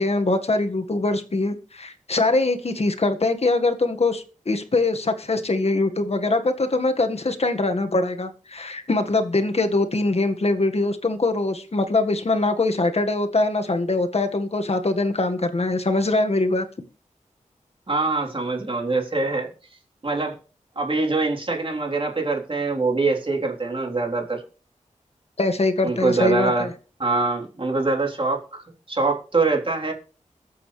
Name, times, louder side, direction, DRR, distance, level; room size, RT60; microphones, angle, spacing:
voice 1, 0.0-16.7 25.4-26.7, left 2 dB, 50° left, 1.8 m, -23 dB
voice 2, 17.9-19.5 20.0-20.4 20.8-24.4 25.8-26.7 27.0-29.9, right 3 dB, 40° right, 3.8 m, -24 dB
22.0 x 8.0 x 3.3 m
wide cardioid pair, 70°, 13 cm